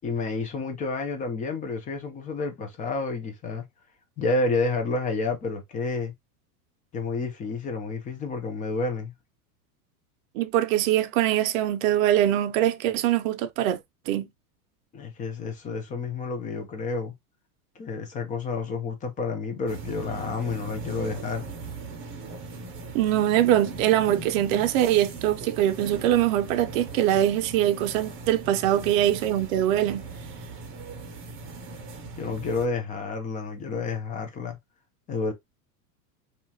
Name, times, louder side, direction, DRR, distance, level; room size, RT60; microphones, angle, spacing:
voice 1, 0.0-3.7 4.2-6.1 6.9-9.1 14.9-17.1 17.8-21.5 32.2-34.6 35.1-35.3, left 3 dB, 15° left, 0.5 m, -30 dB
voice 2, 10.3-13.8 14.1-14.3 22.9-30.0, right 12 dB, 60° right, 0.6 m, -23 dB
sound 1, 19.7-32.7, right 3 dB, 25° right, 0.7 m, -39 dB
2.7 x 2.4 x 2.7 m
supercardioid pair, 125°, 47 cm